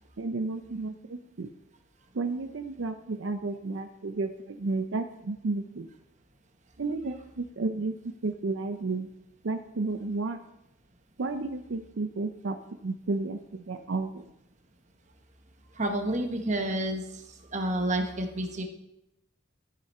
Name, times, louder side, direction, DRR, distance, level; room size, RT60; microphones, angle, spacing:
voice 1, 0.2-1.5 2.1-5.9 6.8-9.1 9.4-10.4 11.2-14.3, right 3 dB, 70° right, 7 dB, 0.5 m, -32 dB
voice 2, 15.7-17.2 17.5-18.6, right 1 dB, 35° right, 4 dB, 1.1 m, -29 dB
13.5 x 6.5 x 4.2 m, 0.86 s
head